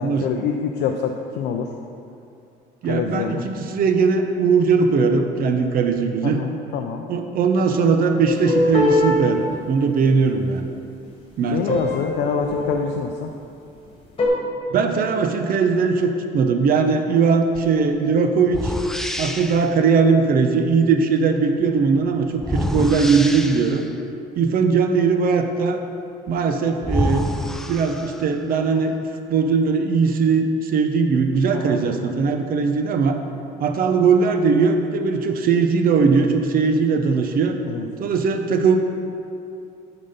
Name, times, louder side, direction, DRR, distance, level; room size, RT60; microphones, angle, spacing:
voice 1, 0.0-1.7 2.8-3.5 6.2-7.0 11.5-13.3 31.5-31.8 37.7-37.9, left 6 dB, 85° left, 3 dB, 0.5 m, -26 dB
voice 2, 2.8-6.4 7.1-10.6 11.4-11.8 14.7-18.7 19.2-23.8 24.4-25.8 26.3-27.3 27.7-29.0 29.3-33.2 33.6-37.6 38.0-38.8, right 5 dB, 60° right, 6 dB, 0.7 m, -19 dB
sound 1, 8.2-9.2 11.7-12.0 12.4-13.0 14.2-14.3, left 1 dB, 35° left, 1.5 m, -21 dB
sound 2, 17.6-17.7 18.5-19.7 22.4-24.0 26.3-26.4 26.8-28.4, left 1 dB, 5° left, 0.3 m, -27 dB
8.5 x 4.1 x 5.5 m, 2.6 s
cardioid pair, 110°, 17 cm